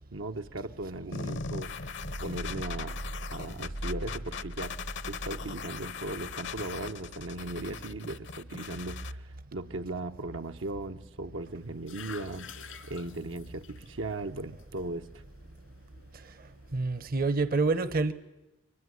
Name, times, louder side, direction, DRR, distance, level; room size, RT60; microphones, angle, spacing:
voice 1, 0.1-3.0 3.3-4.7 5.1-15.2, right 2 dB, 85° right, 6 dB, 1.1 m, -38 dB
sound 1, 1.1-9.1, left 5 dB, 65° left, 0.9 m, -40 dB
sound 2, 11.4-17.1, left 6 dB, 85° left, 2.5 m, -51 dB
voice 2, 16.7-18.1, right 3 dB, 50° right, 15 dB, 0.9 m, -27 dB
23.5 x 19.5 x 9.7 m, 1.0 s
head